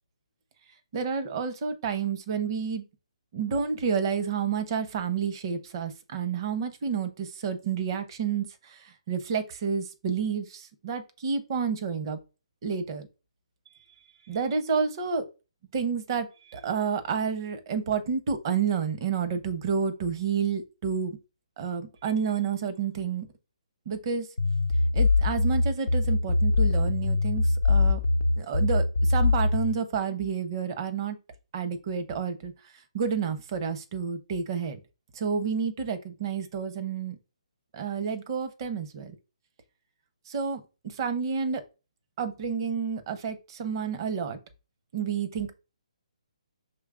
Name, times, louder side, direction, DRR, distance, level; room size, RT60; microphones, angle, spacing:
voice 1, 0.9-2.8 3.3-12.2 12.6-13.1 14.3-15.3 15.7-21.2 21.6-23.3 23.9-24.3 24.9-28.0 28.4-31.2 31.5-32.5 32.9-34.8 35.1-37.2 37.7-39.1 40.3-41.6 42.2-44.4 44.9-45.5, right 6 dB, 40° right, 0.8 m, -30 dB
sound 1, 24.4-29.7, left 3 dB, 85° left, 0.6 m, -23 dB
6.0 x 3.2 x 2.5 m
hypercardioid pair, 145°, 4 cm